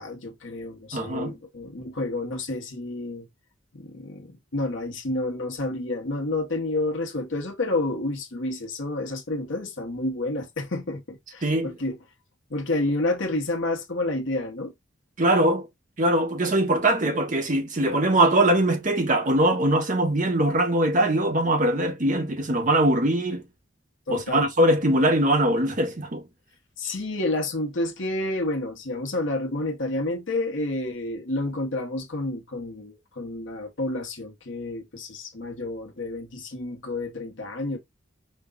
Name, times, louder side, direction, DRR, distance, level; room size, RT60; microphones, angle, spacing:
voice 1, 0.0-3.3 3.7-12.0 12.5-14.7 24.1-24.5 26.8-37.8, left 2 dB, 70° left, 1.1 m, -29 dB
voice 2, 0.9-1.4 11.4-11.7 15.2-15.7 16.0-23.4 24.1-26.2, right 1 dB, 40° right, 0.8 m, -22 dB
5.1 x 2.3 x 3.7 m
head